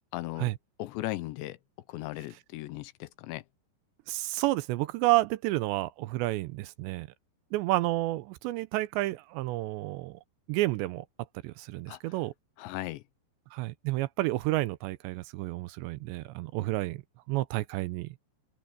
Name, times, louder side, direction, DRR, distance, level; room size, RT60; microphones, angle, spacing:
voice 1, 0.1-0.5 0.8-1.6 1.9-3.4 11.9-12.0 12.6-13.0, left 17 dB, 80° left, 2.9 m, -37 dB
voice 2, 4.1-7.1 7.5-10.2 10.5-11.1 11.4-12.3 13.5-17.0 17.3-18.1, right 18 dB, 80° right, 2.7 m, -30 dB
open air
omnidirectional pair, 5.3 m